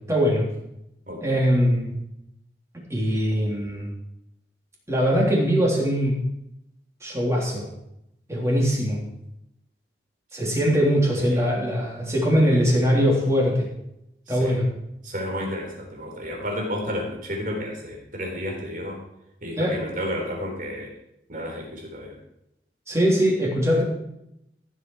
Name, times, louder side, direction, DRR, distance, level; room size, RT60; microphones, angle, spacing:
voice 1, 0.1-0.4 1.2-1.9 2.9-3.9 4.9-6.2 7.0-7.7 8.3-9.0 10.3-13.7 14.3-14.6 19.6-19.7 22.9-23.8, equal, 15° right, -2 dB, 3.3 m, -21 dB
voice 2, 1.1-1.5 11.2-11.5 14.3-14.6 15.0-19.0 19.4-20.9 21.3-22.2, equal, 50° right, 1 dB, 3.7 m, -32 dB
15.0 x 8.0 x 4.7 m, 0.83 s
head